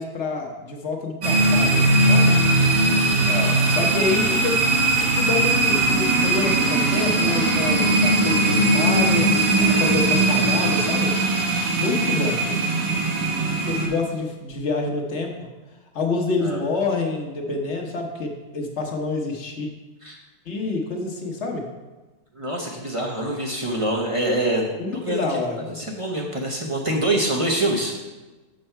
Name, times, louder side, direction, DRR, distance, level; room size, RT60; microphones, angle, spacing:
voice 1, 0.0-2.4 3.7-4.5 4.9-11.1 11.8-12.6 13.6-15.5 15.9-19.7 20.4-21.7 24.8-25.7, left 3 dB, 45° left, 1 dB, 1.1 m, -27 dB
sound 1, 1.2-13.9, right 2 dB, 75° right, 1.9 m, -19 dB
voice 2, 3.3-3.6 16.4-16.6 20.0-20.2 22.3-24.7 24.9-25.4 25.8-28.0, right 1 dB, 35° right, -1 dB, 0.5 m, -25 dB
6.8 x 6.4 x 4.4 m, 1.2 s
omnidirectional pair, 1.9 m